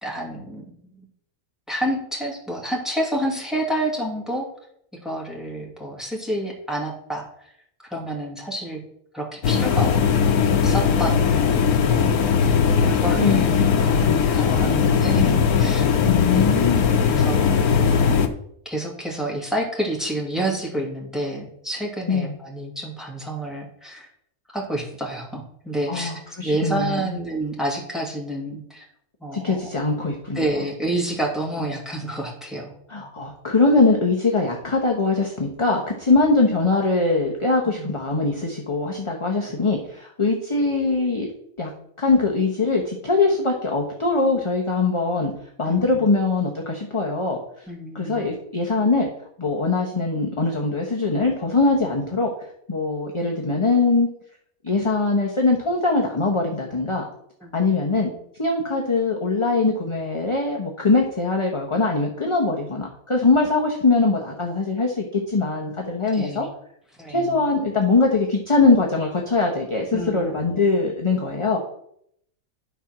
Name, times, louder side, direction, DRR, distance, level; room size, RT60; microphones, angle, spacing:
voice 1, 0.0-1.1 1.7-4.5 5.0-7.2 7.9-8.8 9.1-9.9 10.6-11.3 11.9-12.1 12.8-13.5 14.3-15.9 16.3-16.7 17.0-18.2 18.7-24.1 24.5-28.9 29.2-29.6 30.3-33.1 37.7-37.9 45.7-46.1 47.7-48.3 57.4-57.7 66.1-66.5 67.0-67.5 69.9-70.5, right 1 dB, ahead, -3 dB, 2.4 m, -29 dB
sound 1, 9.4-18.3, left 7 dB, 80° left, 1.4 m, -19 dB
voice 2, 13.1-15.4 16.1-16.9 22.1-22.3 25.9-27.2 29.3-30.5 32.9-41.3 41.6-41.7 42.0-45.3 45.6-47.7 47.9-49.1 49.4-52.3 52.7-54.1 54.6-57.0 57.5-58.1 58.4-66.5 67.1-71.6, left 3 dB, 20° left, 0 dB, 1.1 m, -22 dB
11.5 x 4.5 x 6.0 m, 0.71 s
omnidirectional pair, 1.6 m